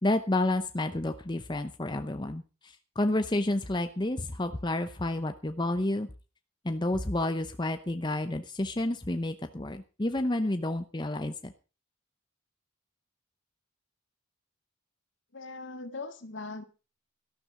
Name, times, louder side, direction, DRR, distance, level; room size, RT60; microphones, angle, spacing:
voice 1, 0.0-6.1 6.6-11.5, left 1 dB, 20° left, 8 dB, 0.8 m, -30 dB
voice 2, 15.3-16.6, left 3 dB, 60° left, 9 dB, 1.9 m, -40 dB
13.5 x 12.0 x 5.0 m, 0.34 s
head